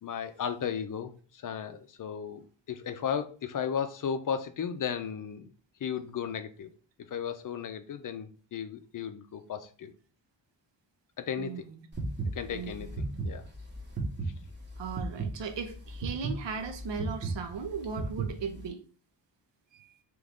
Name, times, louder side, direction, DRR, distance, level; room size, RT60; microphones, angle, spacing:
voice 1, 0.0-5.5 5.8-6.7 7.0-9.9 11.2-11.7 12.3-13.5, left 7 dB, 45° left, 9 dB, 0.5 m, -35 dB
voice 2, 11.4-11.9 12.5-12.9 14.8-18.8 19.7-20.0, right 6 dB, 70° right, 7 dB, 0.8 m, -37 dB
sound 1, 11.9-18.7, right 3 dB, 25° right, 0.9 m, -35 dB
3.7 x 3.1 x 3.5 m, 0.40 s
wide cardioid pair, 135°, 44 cm